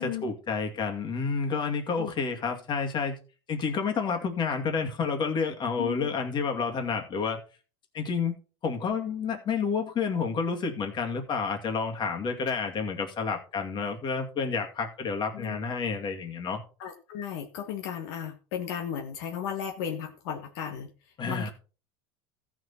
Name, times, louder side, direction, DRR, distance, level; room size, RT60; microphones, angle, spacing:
voice 1, 0.0-3.2 3.5-7.4 7.9-8.3 8.6-16.6 21.2-21.5, left 5 dB, 35° left, 2.4 m, -30 dB
voice 2, 5.8-6.1 15.3-15.6 16.8-20.9 21.3-21.5, left 9 dB, 70° left, 1.5 m, -35 dB
14.0 x 6.3 x 4.3 m
supercardioid pair, 115°, 13 cm